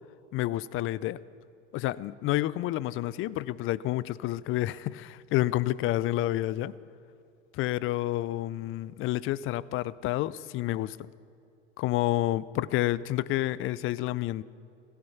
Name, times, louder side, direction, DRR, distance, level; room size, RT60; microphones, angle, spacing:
voice 1, 0.3-1.2 1.7-6.7 7.5-11.1 11.8-14.4, left 15 dB, 35° left, 20 dB, 0.5 m, -29 dB
16.5 x 15.0 x 5.9 m, 2.6 s
hypercardioid pair, 85°, 37 cm